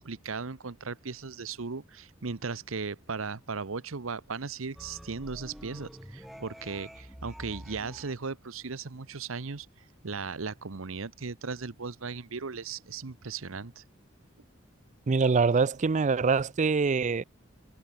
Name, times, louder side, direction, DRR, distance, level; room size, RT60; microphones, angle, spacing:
voice 1, 0.0-9.7 10.0-13.8, right 4 dB, 85° right, 1.0 m, -37 dB
sound 1, 4.8-8.1, equal, ahead, 1.4 m, -46 dB
voice 2, 15.1-17.2, right 4 dB, 35° right, 0.5 m, -24 dB
head